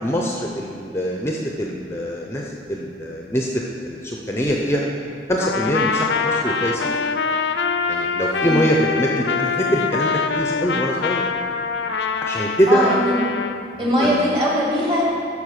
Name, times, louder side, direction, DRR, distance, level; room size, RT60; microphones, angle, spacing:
voice 1, 0.0-3.5 3.8-4.9 5.3-6.8 7.9-11.2 12.2-12.9 13.7-14.2, equal, 15° left, -1 dB, 0.6 m, -23 dB
Trumpet, 5.4-13.6, left 5 dB, 80° left, 0.5 m, -24 dB
voice 2, 8.4-8.7 12.7-13.3 13.8-15.0, equal, 30° right, -5 dB, 2.3 m, -20 dB
12.5 x 5.0 x 6.5 m, 2.4 s
head